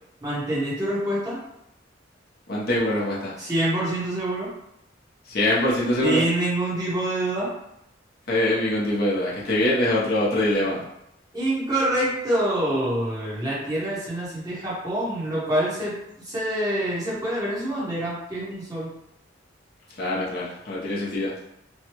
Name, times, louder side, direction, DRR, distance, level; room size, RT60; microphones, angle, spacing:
voice 1, 0.2-1.4 3.4-4.5 6.0-7.5 11.3-16.0 16.2-18.9, right 1 dB, 20° right, -8 dB, 1.1 m, -26 dB
voice 2, 2.5-3.3 5.3-6.2 8.3-10.8 20.0-21.3, left 1 dB, 55° left, -6 dB, 0.8 m, -23 dB
3.1 x 2.3 x 3.0 m, 0.80 s
head